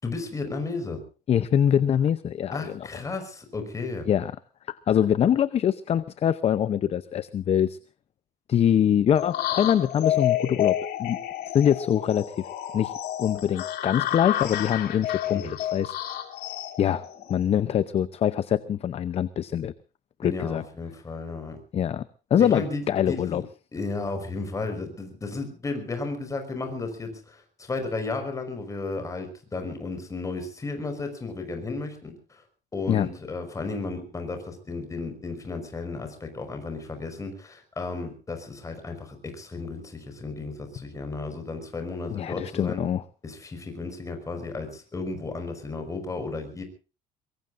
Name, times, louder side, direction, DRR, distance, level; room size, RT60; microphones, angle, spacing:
voice 1, 0.0-1.0 2.5-4.1 15.3-15.5 20.2-21.6 22.4-23.4 23.7-32.4 32.7-42.8 43.2-46.6, left 3 dB, 20° left, 6 dB, 5.2 m, -34 dB
voice 2, 1.3-2.9 4.1-4.3 4.7-7.8 8.5-11.2 11.5-12.4 12.7-12.9 13.2-15.4 15.7-15.9 16.8-17.0 17.3-19.7 20.2-20.6 21.7-22.1 22.3-23.4 32.9-33.1 42.1-43.0, left 9 dB, 35° left, 15 dB, 0.7 m, -24 dB
sound 1, 9.2-17.6, left 12 dB, 65° left, 3.2 m, -30 dB
23.0 x 23.0 x 2.6 m, 0.36 s
cardioid pair, 150°, 18 cm